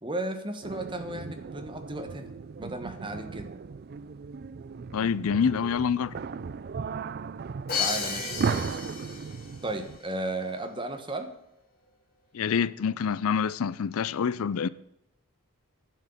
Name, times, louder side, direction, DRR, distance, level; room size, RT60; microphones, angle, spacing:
voice 1, 0.0-3.5 7.8-8.8 9.6-11.3, right 2 dB, 20° right, 1.2 m, -35 dB
sound 1, 0.6-10.0, right 5 dB, 45° right, 0.3 m, -36 dB
voice 2, 4.9-6.2 12.3-14.7, left 6 dB, 70° left, 0.4 m, -26 dB
Crash cymbal, 7.7-9.5, left 5 dB, 40° left, 3.0 m, -32 dB
11.0 x 6.5 x 9.0 m
head